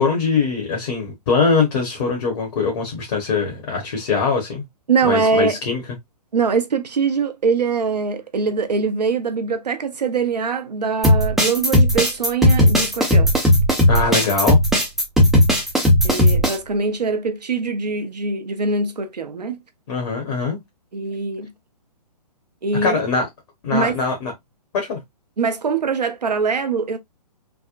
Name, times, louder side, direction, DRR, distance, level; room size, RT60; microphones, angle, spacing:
voice 1, 0.0-4.6 5.0-5.8 13.9-14.6 19.9-20.6 22.8-23.3 23.6-24.3 24.7-25.0, left 4 dB, 40° left, 1.1 m, -22 dB
voice 2, 4.9-5.6 6.3-13.3 16.0-19.6 20.9-21.5 22.6-23.0 23.7-24.0 25.4-27.0, right 4 dB, 75° right, 0.7 m, -22 dB
sound 1, 11.0-16.5, left 1 dB, ahead, 0.4 m, -16 dB
3.5 x 2.1 x 2.4 m
figure-of-eight pair, 130°, 21 cm